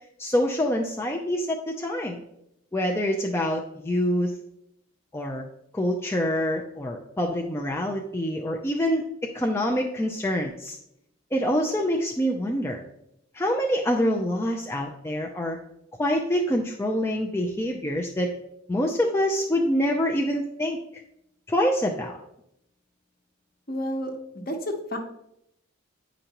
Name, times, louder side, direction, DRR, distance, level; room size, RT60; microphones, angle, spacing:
voice 1, 0.2-2.2 2.7-4.3 5.1-5.4 5.7-9.1 9.3-10.8 11.3-12.8 13.3-15.6 16.0-18.3 18.7-20.8 21.5-22.2, equal, 10° left, 0 dB, 0.4 m, -26 dB
voice 2, 23.7-25.0, equal, 45° left, 3 dB, 1.0 m, -31 dB
9.0 x 5.1 x 2.9 m, 0.78 s
head